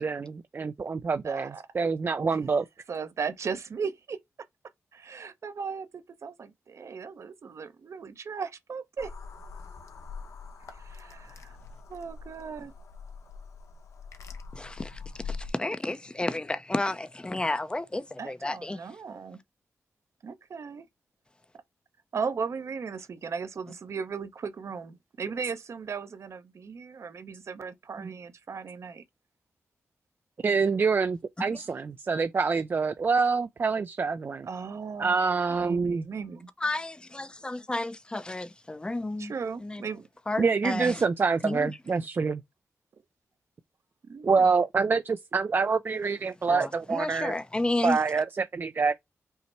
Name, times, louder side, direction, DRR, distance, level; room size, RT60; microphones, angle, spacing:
voice 1, 0.0-2.6 28.0-28.1 30.4-34.5 35.0-36.1 40.4-42.4 44.2-47.3 47.8-49.0, right 4 dB, 40° right, 0.4 m, -26 dB
voice 2, 1.2-1.6 2.3-2.4 2.9-4.2 4.9-9.1 10.7-11.6 11.9-12.7 18.2-19.4 20.2-20.9 22.1-29.0 34.4-36.5 39.2-40.1 44.0-44.5, right 5 dB, 65° right, 0.7 m, -37 dB
sound 1, 9.0-15.5, left 5 dB, 70° left, 0.9 m, -43 dB
voice 3, 14.5-18.8 31.4-31.6 36.6-39.3 39.6-39.8 40.3-41.0 41.4-41.7 46.5-48.0, left 2 dB, 15° left, 0.6 m, -32 dB
5.6 x 2.1 x 4.1 m
cardioid pair, 75°, 5 cm